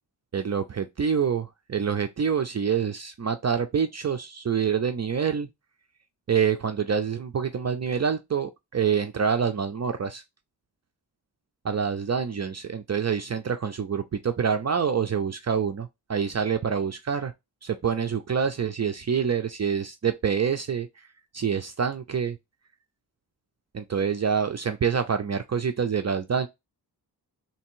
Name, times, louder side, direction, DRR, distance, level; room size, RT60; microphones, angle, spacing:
voice 1, 0.3-5.5 6.3-10.2 11.6-17.3 17.6-20.9 21.3-22.4 23.7-26.5, right 6 dB, 40° right, 0.5 m, -26 dB
3.3 x 2.9 x 4.5 m
wide cardioid pair, 125°, 39 cm